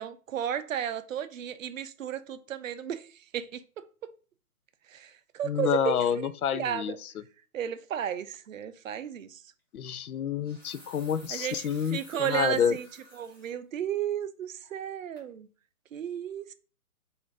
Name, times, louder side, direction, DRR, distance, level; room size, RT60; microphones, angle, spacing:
voice 1, 0.0-3.1 3.3-3.9 4.9-7.0 7.5-9.4 11.3-12.9 13.1-15.5 15.9-16.5, right 9 dB, 60° right, 0.5 m, -33 dB
voice 2, 5.4-7.1 9.7-12.8, left 8 dB, 70° left, 0.5 m, -28 dB
sound 1, 9.0-9.2 10.2-13.5 14.0-14.1 14.6-14.9 15.2-15.3, equal, 15° left, 0.6 m, -54 dB
4.2 x 2.6 x 4.5 m
hypercardioid pair, 165°, 46 cm